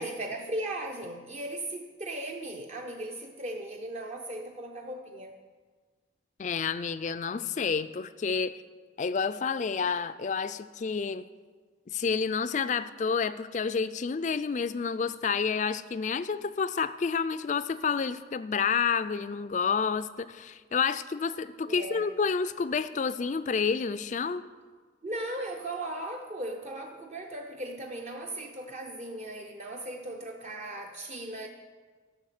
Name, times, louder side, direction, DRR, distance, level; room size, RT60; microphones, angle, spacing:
voice 1, 0.0-5.3 21.7-22.1 25.0-31.5, right 1 dB, 35° right, 2 dB, 0.6 m, -37 dB
voice 2, 6.4-8.6 9.0-11.2 11.9-24.4, left 5 dB, 40° left, 14 dB, 0.3 m, -29 dB
12.5 x 6.3 x 6.6 m, 1.5 s
head